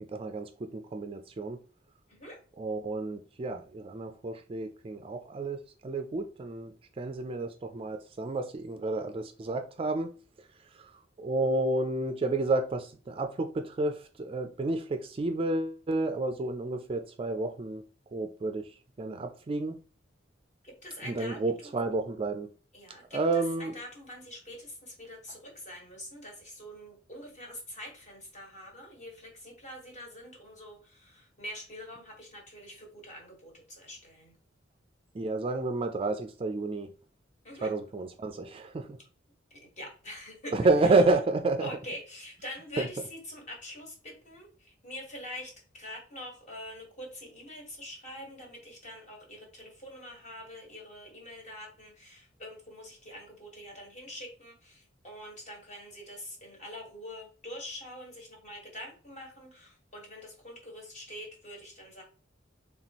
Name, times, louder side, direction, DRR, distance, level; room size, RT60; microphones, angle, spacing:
voice 1, 0.1-1.6 2.6-10.1 10.7-10.9 11.2-17.8 18.1-18.7 19.0-19.8 21.0-22.5 23.1-23.7 35.1-36.9 37.6-39.0 40.5-41.7 42.8-42.9, right 2 dB, 30° right, 0.3 m, -30 dB
voice 2, 2.1-2.4 20.6-21.8 22.7-34.3 37.4-37.7 39.8-41.2 41.6-62.0, left 1 dB, 40° left, 1.6 m, -45 dB
4.2 x 3.5 x 2.9 m
head